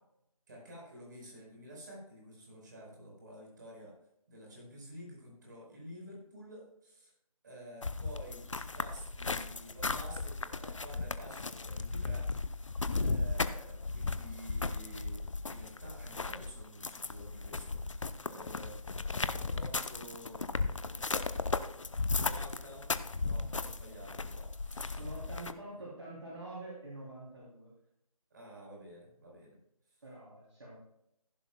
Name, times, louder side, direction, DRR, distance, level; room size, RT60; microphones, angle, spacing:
voice 1, 0.5-3.9 4.3-7.1 7.4-12.3 12.8-18.8 19.2-21.3 22.1-22.9 23.2-25.0 28.3-29.6 29.9-30.0, equal, 30° right, -2 dB, 4.7 m, -51 dB
sound 1, 7.8-25.5, left 3 dB, 55° left, 0.8 m, -36 dB
voice 2, 25.0-27.7 30.0-30.8, right 2 dB, 50° right, -5 dB, 3.3 m, -46 dB
15.5 x 10.5 x 2.3 m, 0.80 s
figure-of-eight pair, 160°, 19 cm